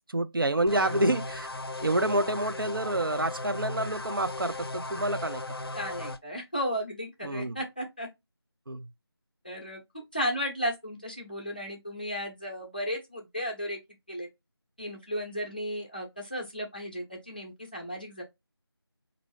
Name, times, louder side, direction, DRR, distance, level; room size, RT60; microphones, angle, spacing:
voice 1, 0.1-1.5 1.8-5.4 7.2-7.6 8.7-8.9, right 1 dB, 60° right, 0.4 m, -28 dB
sound 1, 0.7-6.2, left 2 dB, 65° left, 0.5 m, -37 dB
voice 2, 0.7-1.0 5.8-8.1 9.4-13.8 14.1-14.3 14.8-18.2, equal, 20° left, 0.7 m, -34 dB
4.3 x 2.6 x 3.0 m
figure-of-eight pair, 175°, 13 cm